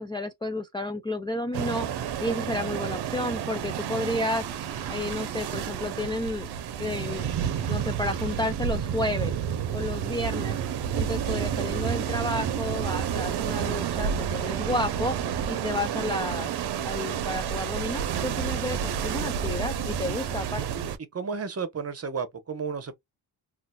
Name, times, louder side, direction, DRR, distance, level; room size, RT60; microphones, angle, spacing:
voice 1, 0.0-1.9 2.2-4.4 4.9-6.5 6.8-7.3 7.7-9.3 9.7-10.6 11.0-15.2 15.5-16.5 16.8-20.7, left 1 dB, 10° left, 0.4 m, -31 dB
sound 1, 1.5-21.0, right 8 dB, 65° right, 0.7 m, -30 dB
voice 2, 21.1-23.0, right 5 dB, 35° right, 0.9 m, -33 dB
3.9 x 2.6 x 2.2 m
cardioid pair, 95°, 43 cm